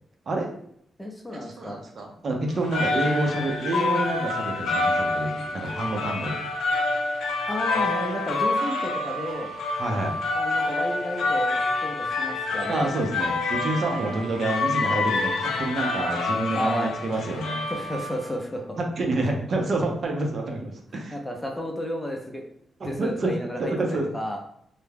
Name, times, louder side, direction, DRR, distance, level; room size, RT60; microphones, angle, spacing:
voice 1, 0.3-0.6 1.3-6.4 9.8-10.1 12.7-17.6 19.0-21.2 22.8-23.3 23.6-24.1, right 2 dB, 55° right, 1 dB, 0.6 m, -28 dB
voice 2, 1.0-1.8 7.5-9.5 10.3-12.9 13.9-14.2 16.5-16.9 17.7-18.8 21.1-22.4 22.8-24.4, equal, 10° left, 1 dB, 0.6 m, -32 dB
sound 1, 2.5-18.4, left 3 dB, 85° left, 0.3 m, -27 dB
2.2 x 2.1 x 3.3 m, 0.69 s
cardioid pair, 70°, 0 cm